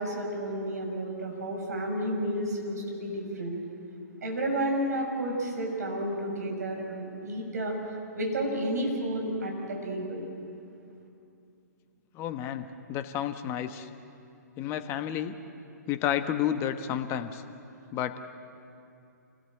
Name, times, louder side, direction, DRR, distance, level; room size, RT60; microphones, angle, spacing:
voice 1, 0.0-3.6 4.2-7.7 8.1-10.2, right 1 dB, 65° right, 1 dB, 6.1 m, -31 dB
voice 2, 12.1-13.9 14.6-15.3 15.9-17.4 17.9-18.2, left 10 dB, 25° left, 9 dB, 1.2 m, -31 dB
26.5 x 18.0 x 7.9 m, 2.6 s
figure-of-eight pair, 120°, 10 cm